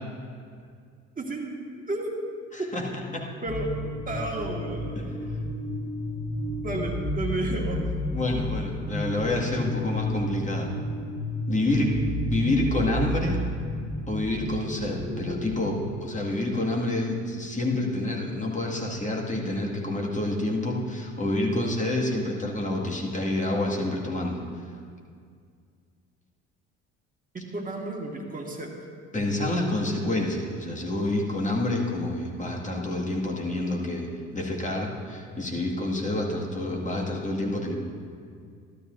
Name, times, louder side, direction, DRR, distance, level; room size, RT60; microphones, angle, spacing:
voice 1, 1.2-1.6 1.9-2.1 2.6-2.7 3.4-3.7 4.1-5.4 6.6-7.8 11.6-11.8 27.3-28.7, right 2 dB, 25° right, 0 dB, 1.9 m, -32 dB
voice 2, 2.5-3.3 5.0-5.1 7.8-7.9 8.1-10.7 11.5-12.0 12.2-13.4 14.1-24.4 29.1-34.1 34.3-37.7, left 1 dB, 20° left, -2 dB, 2.1 m, -28 dB
sound 1, 3.5-15.8, left 1 dB, 75° left, 1.8 m, -32 dB
13.0 x 12.5 x 2.7 m, 2.1 s
hypercardioid pair, 60°, 35 cm